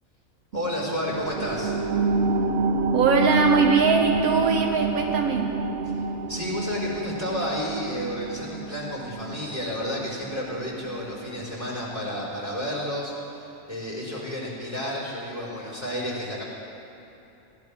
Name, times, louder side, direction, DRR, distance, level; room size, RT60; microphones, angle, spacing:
voice 1, 0.5-1.7 6.3-13.1 13.7-16.4, left 1 dB, 10° right, -4 dB, 4.9 m, -31 dB
sound 1, 0.5-11.6 12.0-12.1, right 3 dB, 50° right, 0.9 m, -28 dB
voice 2, 2.9-5.6, right 5 dB, 75° right, 3 dB, 1.3 m, -21 dB
21.5 x 17.5 x 3.6 m, 2.8 s
omnidirectional pair, 1.5 m